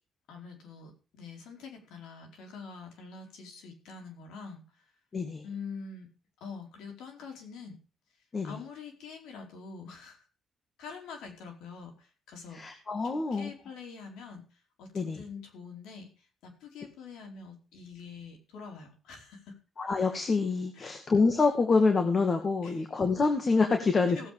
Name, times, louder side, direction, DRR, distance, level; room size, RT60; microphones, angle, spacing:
voice 1, 0.3-4.9 5.4-6.1 6.4-7.8 8.4-10.3 10.8-12.7 13.0-19.6 20.7-21.0 22.6-22.8 24.1-24.3, left 5 dB, 85° left, 3 dB, 4.5 m, -45 dB
voice 2, 5.1-5.4 8.3-8.6 12.5-13.5 14.9-15.2 19.8-24.3, left 4 dB, 40° left, 6 dB, 2.2 m, -26 dB
17.5 x 8.0 x 5.0 m, 0.34 s
cardioid pair, 90°, 0 cm